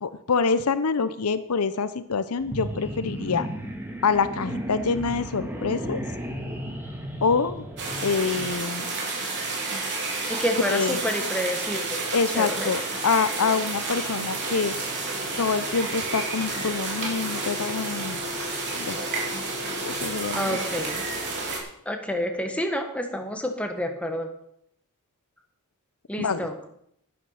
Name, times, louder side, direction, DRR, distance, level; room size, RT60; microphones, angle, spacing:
voice 1, 0.0-3.5 4.0-6.0 7.2-7.6 8.0-8.9 10.7-11.0 12.1-14.7 15.4-18.2 18.7-19.0 19.8-20.6 26.2-26.5, left 5 dB, 75° left, 13 dB, 0.7 m, -26 dB
sound 1, 2.4-8.6, equal, 10° right, 1.9 m, -34 dB
sound 2, 7.8-21.6, right 3 dB, 55° right, 3.3 m, -30 dB
voice 2, 10.3-12.1 12.3-12.7 20.3-21.0 21.8-24.3 26.1-26.7, equal, 5° left, 4 dB, 1.5 m, -29 dB
11.0 x 10.0 x 5.7 m, 0.72 s
head